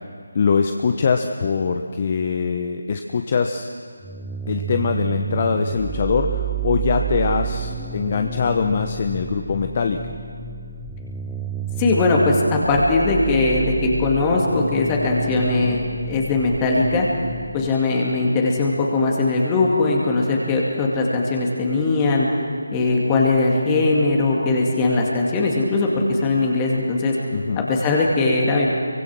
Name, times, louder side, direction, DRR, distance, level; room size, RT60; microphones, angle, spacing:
voice 1, 0.3-3.7 4.5-10.0 27.3-27.7, left 5 dB, 35° left, 5 dB, 1.0 m, -22 dB
sound 1, 4.0-17.7, right 7 dB, ahead, 0.7 m, -30 dB
voice 2, 11.8-17.1 17.5-22.3 22.7-27.2 27.6-28.7, left 3 dB, 15° left, -2 dB, 2.2 m, -20 dB
28.5 x 24.0 x 6.2 m, 2.2 s
figure-of-eight pair, 160°, 0 cm